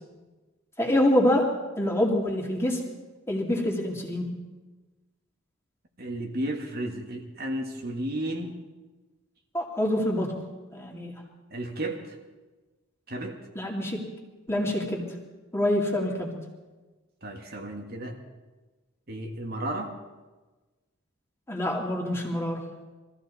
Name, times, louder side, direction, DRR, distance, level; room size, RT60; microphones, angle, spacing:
voice 1, 0.8-1.5 1.8-2.8 3.3-4.2 9.5-10.3 10.7-11.1 13.5-14.1 14.5-15.1 15.5-16.3 21.5-22.6, left 1 dB, 15° left, -1 dB, 2.4 m, -26 dB
voice 2, 6.0-8.6 11.5-12.1 13.1-13.4 17.2-18.2 19.1-19.9, right 1 dB, 50° right, 2 dB, 1.6 m, -33 dB
23.0 x 15.0 x 4.1 m, 1.2 s
head